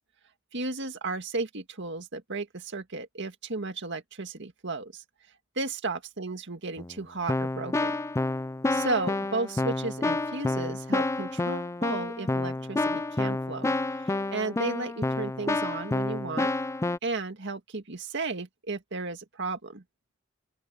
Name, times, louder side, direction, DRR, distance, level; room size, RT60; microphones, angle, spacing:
voice 1, 0.5-5.0 5.6-7.9 8.7-13.7 14.0-16.5 17.0-19.8, right 3 dB, 60° right, 2.0 m, -34 dB
Keyboard (musical), 6.8-6.9 7.3-17.0, left 2 dB, 15° left, 0.3 m, -29 dB
open air
head